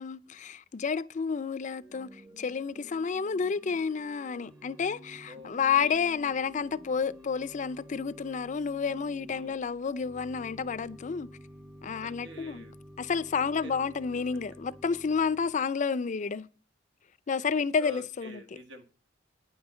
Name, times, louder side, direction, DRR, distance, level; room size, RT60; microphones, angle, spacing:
voice 1, 0.0-11.3 11.8-12.7 13.0-16.5 17.3-18.4, left 5 dB, 40° left, 0.4 m, -30 dB
Organ / Church bell, 1.6-15.8, equal, 15° right, 0.8 m, -51 dB
voice 2, 5.3-6.0 9.2-9.6 11.9-12.7 13.6-13.7 17.8-18.8, equal, 85° right, 1.7 m, -47 dB
9.5 x 5.5 x 7.0 m
head